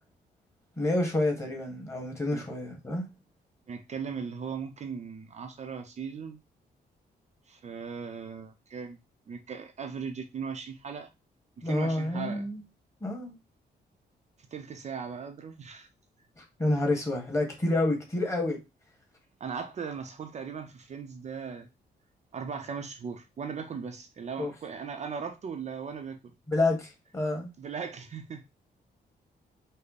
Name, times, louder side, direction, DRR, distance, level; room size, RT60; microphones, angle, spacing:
voice 1, 0.8-3.1 11.6-12.6 13.0-13.3 16.4-18.6 24.4-24.5 26.5-27.5, left 2 dB, 15° left, 1.4 m, -28 dB
voice 2, 3.7-6.4 7.5-9.0 9.3-11.1 11.6-12.5 14.5-15.9 19.4-21.7 22.3-26.2 27.6-28.4, right 6 dB, 40° right, 0.6 m, -38 dB
5.4 x 2.1 x 4.1 m
cardioid pair, 145°, 17 cm